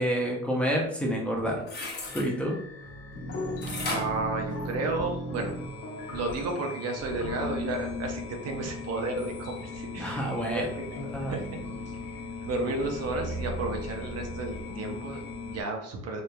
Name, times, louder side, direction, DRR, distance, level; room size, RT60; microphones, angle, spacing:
voice 1, 0.0-1.6 2.1-2.6 10.0-10.7 11.1-11.3, equal, 5° left, -2 dB, 0.6 m, -28 dB
sound 1, 1.6-2.3 3.6-5.2 5.6-5.7, left 2 dB, 35° left, 0.8 m, -35 dB
sound 2, 2.1-15.6, left 1 dB, 80° left, 0.9 m, -37 dB
voice 2, 3.9-5.5 6.1-11.0 11.3-11.4 12.4-16.2, right 2 dB, 55° right, 2 dB, 0.6 m, -32 dB
2.9 x 2.3 x 2.2 m, 0.75 s
cardioid pair, 95°, 30 cm